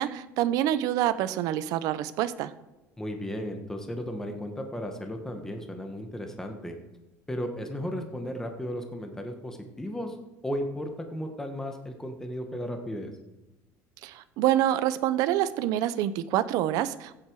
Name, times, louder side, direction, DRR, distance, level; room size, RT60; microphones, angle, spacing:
voice 1, 0.0-2.5 14.0-17.1, right 12 dB, 65° right, 13 dB, 0.9 m, -26 dB
voice 2, 3.0-6.7 7.3-10.2 10.4-13.1, equal, 5° left, 4 dB, 1.7 m, -35 dB
15.5 x 8.7 x 4.9 m, 1.0 s
cardioid pair, 140°, 7 cm